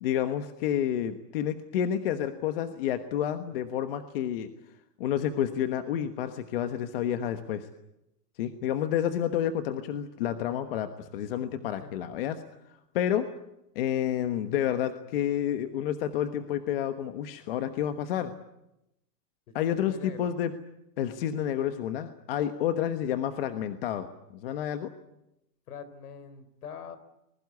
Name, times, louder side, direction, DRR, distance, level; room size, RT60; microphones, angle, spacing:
voice 1, 0.0-4.5 5.0-7.7 8.4-12.3 12.9-13.3 13.7-18.3 19.5-20.5 21.0-24.1 24.3-24.9, left 10 dB, 35° left, 8 dB, 1.3 m, -29 dB
voice 2, 19.5-20.3 25.7-27.0, left 6 dB, 60° left, 14 dB, 3.8 m, -44 dB
25.0 x 21.0 x 9.6 m, 0.88 s
supercardioid pair, 170°, 49 cm